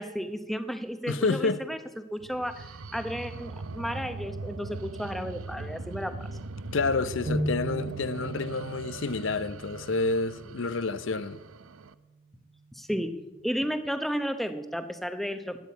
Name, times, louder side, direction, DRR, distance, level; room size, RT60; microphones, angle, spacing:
voice 1, 0.0-6.1 12.7-13.1 13.4-15.6, equal, ahead, 0.8 m, -33 dB
voice 2, 1.1-1.6 6.7-11.4, left 3 dB, 60° left, 0.7 m, -29 dB
sound 1, 2.2-11.9, right 3 dB, 75° right, 0.7 m, -41 dB
sound 2, 7.3-10.8, right 1 dB, 45° right, 1.4 m, -36 dB
12.5 x 9.2 x 9.4 m
head